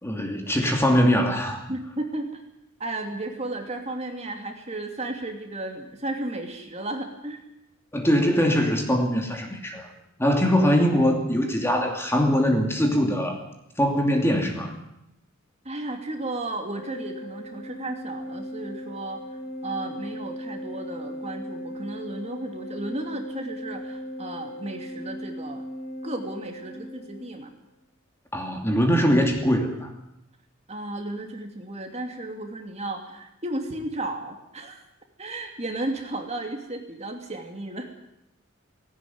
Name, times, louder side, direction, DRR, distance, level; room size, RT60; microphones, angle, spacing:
voice 1, 0.0-1.6 7.9-9.9 10.2-13.4 13.8-14.8 28.3-29.9, equal, 10° left, 3 dB, 2.6 m, -22 dB
voice 2, 1.7-2.4 2.8-7.4 15.6-25.6 26.0-27.5 30.7-34.8 35.2-37.9, right 2 dB, 30° right, 4 dB, 2.7 m, -34 dB
Organ, 16.7-27.5, equal, 35° left, 6.1 m, -37 dB
18.0 x 17.5 x 9.5 m, 0.83 s
head